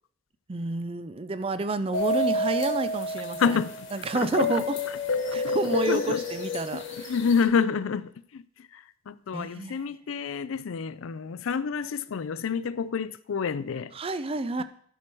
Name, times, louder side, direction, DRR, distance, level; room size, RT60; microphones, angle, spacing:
voice 1, 0.5-3.6 3.9-4.8 5.3-7.1 9.3-9.8 13.9-14.6, right 3 dB, 30° right, 0.4 m, -30 dB
sound 1, 1.9-7.4, left 2 dB, 75° left, 1.6 m, -29 dB
voice 2, 3.4-3.9 4.1-4.6 5.3-6.2 6.7-6.8 7.1-8.4 8.7-13.9, left 6 dB, 90° left, 0.4 m, -28 dB
11.0 x 6.1 x 4.5 m
head